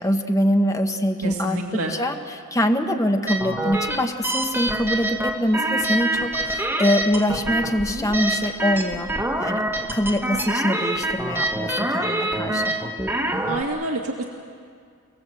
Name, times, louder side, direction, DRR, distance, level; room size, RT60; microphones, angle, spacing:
voice 1, 0.0-9.1 9.4-12.7, equal, 15° left, 5 dB, 1.2 m, -24 dB
voice 2, 1.2-1.9 13.5-14.2, right 1 dB, 70° right, 0 dB, 1.8 m, -27 dB
sound 1, 3.3-13.6, right 1 dB, 10° right, 1.4 m, -26 dB
29.5 x 19.0 x 7.8 m, 2.1 s
head